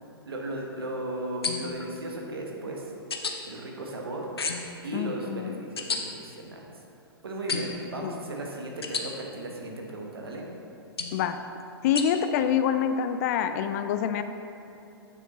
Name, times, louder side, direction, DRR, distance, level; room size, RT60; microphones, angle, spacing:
voice 1, 0.2-2.9 3.5-4.3 4.8-6.6 7.2-10.5, right 1 dB, 75° right, 0 dB, 1.2 m, -36 dB
sound 1, 1.4-1.9 3.1-3.4 4.4-4.8 5.8-6.0 7.5-7.9 8.8-9.1 11.0-11.2 12.0-12.1, left 5 dB, 80° left, 0.7 m, -31 dB
voice 2, 4.9-5.6 8.0-8.2 11.1-11.4 11.8-14.2, left 8 dB, 45° left, 10 dB, 0.4 m, -26 dB
8.6 x 6.4 x 3.0 m, 2.8 s
figure-of-eight pair, 105°, 13 cm